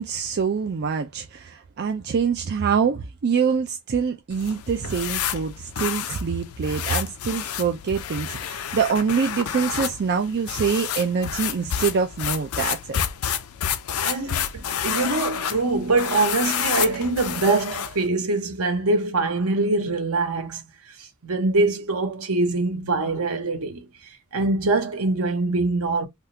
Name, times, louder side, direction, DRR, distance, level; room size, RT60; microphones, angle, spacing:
voice 1, 0.0-13.0, right 6 dB, 50° right, 0.4 m, -25 dB
sound 1, 4.3-18.1, left 9 dB, 80° left, 0.5 m, -30 dB
voice 2, 14.0-23.9 24.3-26.1, right 3 dB, 75° right, 1.0 m, -24 dB
3.5 x 2.4 x 2.7 m
head